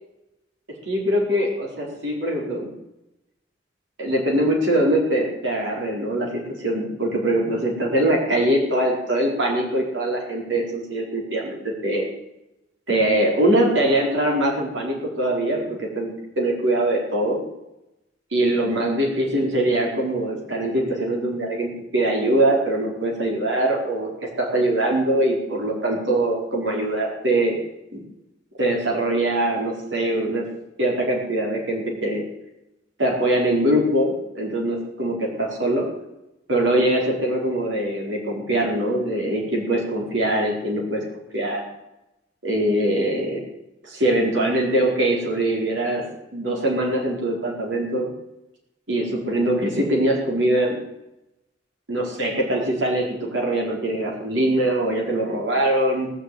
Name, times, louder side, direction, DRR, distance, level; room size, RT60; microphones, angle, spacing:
voice 1, 0.9-2.7 4.0-12.1 12.9-17.4 18.3-24.1 24.4-27.6 27.9-28.0 28.6-30.5 30.8-32.2 33.0-35.9 36.5-41.0 41.3-41.6 42.4-43.4 43.8-46.0 46.3-48.1 48.9-50.8 51.9-56.1, right 1 dB, 90° right, -1 dB, 4.4 m, -22 dB
18.0 x 6.9 x 9.4 m, 0.91 s
head